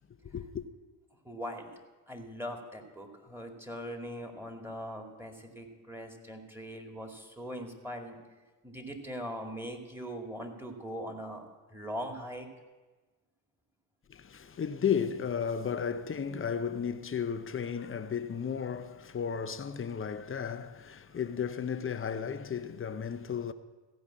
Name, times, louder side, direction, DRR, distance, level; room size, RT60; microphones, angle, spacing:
voice 1, 0.2-0.7 14.1-23.5, left 7 dB, 25° left, 0.8 m, -34 dB
voice 2, 1.2-1.7 2.1-8.2 8.6-12.5, equal, 5° right, 2.2 m, -41 dB
15.0 x 5.4 x 8.6 m
hypercardioid pair, 65°, 49 cm